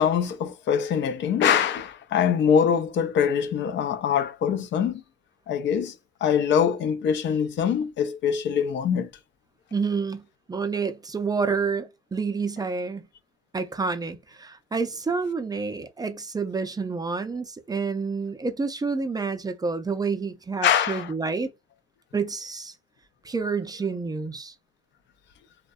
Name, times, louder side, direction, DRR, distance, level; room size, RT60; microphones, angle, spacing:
voice 1, 0.0-5.0 5.5-5.9 6.2-9.1 20.6-21.1, left 8 dB, 70° left, 0.4 m, -23 dB
voice 2, 9.7-10.2 10.5-13.0 13.5-21.5 22.1-22.7 23.2-24.5, right 4 dB, 20° right, 0.4 m, -28 dB
2.6 x 2.1 x 2.3 m
cardioid pair, 90°, 20 cm